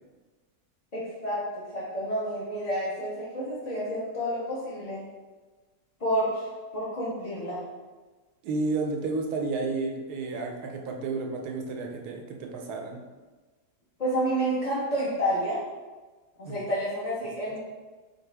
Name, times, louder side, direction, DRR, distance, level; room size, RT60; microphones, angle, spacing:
voice 1, 0.9-1.4 1.7-5.0 6.0-6.5 6.7-7.6 14.0-15.6 16.4-17.6, equal, 40° left, -9 dB, 0.6 m, -29 dB
voice 2, 8.4-13.0 16.4-16.5, right 3 dB, 90° right, 2 dB, 1.2 m, -31 dB
4.6 x 2.4 x 3.3 m, 1.3 s
omnidirectional pair, 1.7 m